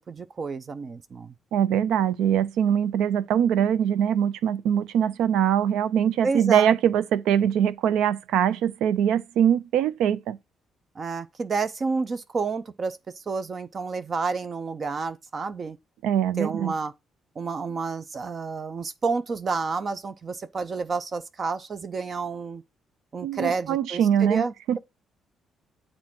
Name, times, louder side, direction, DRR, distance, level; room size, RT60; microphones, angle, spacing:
voice 1, 0.1-1.3 6.2-6.8 11.0-15.8 16.4-16.9 17.4-22.6 23.1-24.8, right 4 dB, 40° right, 0.5 m, -30 dB
voice 2, 1.5-10.4 16.0-16.7 23.2-24.8, right 9 dB, 90° right, 0.5 m, -23 dB
7.4 x 3.7 x 5.9 m
cardioid pair, 90°, 0 cm